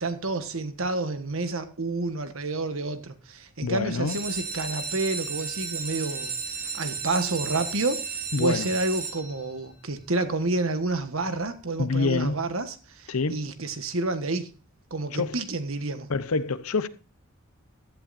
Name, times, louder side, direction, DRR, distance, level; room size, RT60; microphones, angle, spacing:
voice 1, 0.0-6.3 6.8-8.0 8.4-14.5 14.9-16.1, right 3 dB, 70° right, 1.4 m, -29 dB
voice 2, 3.6-4.2 8.3-8.7 11.8-12.4 13.1-13.5 15.1-15.4 16.1-16.9, left 4 dB, 80° left, 0.8 m, -26 dB
sound 1, 3.9-9.7 10.3-10.8 11.2-11.3 11.5-11.6 12.0-12.2, right 5 dB, 40° right, 2.1 m, -34 dB
16.0 x 11.5 x 2.6 m
head